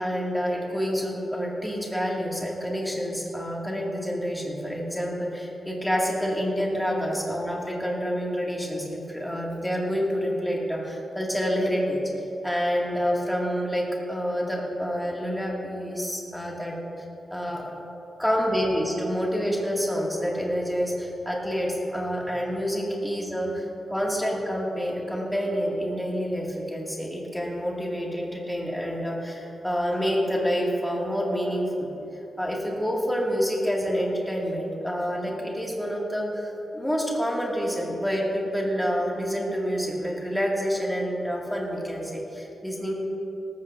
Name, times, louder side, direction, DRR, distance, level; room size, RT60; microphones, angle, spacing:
voice 1, 0.0-16.7 17.3-17.6 18.2-31.9 32.4-42.9, equal, 5° left, -3 dB, 2.2 m, -28 dB
18.5 x 14.0 x 2.7 m, 2.9 s
wide cardioid pair, 135°, 0 cm